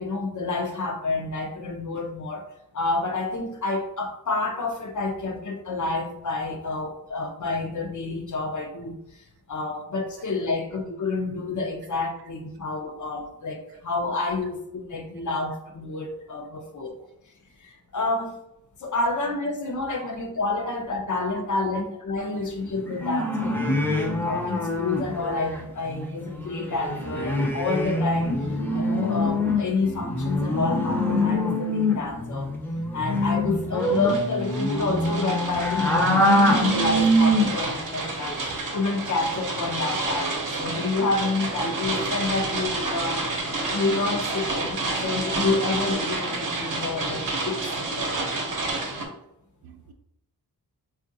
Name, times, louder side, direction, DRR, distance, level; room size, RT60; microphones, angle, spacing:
voice 1, 0.0-2.4 2.7-8.9 9.5-16.9 17.6-18.4 18.8-23.6 23.9-28.3 28.7-32.5 32.9-38.4 38.7-43.2 43.7-48.1, left 3 dB, 55° left, 0.7 m, -29 dB
voice 2, 16.5-17.2 18.2-18.3 20.0-20.1 22.3-22.5 23.7-23.8 24.5-24.6 26.0-26.2 49.6-49.9, right 8 dB, 75° right, 0.5 m, -48 dB
sound 1, 22.8-25.6 25.9-26.0 26.3-37.8 38.1-38.5, left 1 dB, 5° left, 0.7 m, -24 dB
sound 2, 33.8-49.0, right 2 dB, 55° right, 0.8 m, -29 dB
3.6 x 2.4 x 2.6 m
cardioid pair, 70°, 37 cm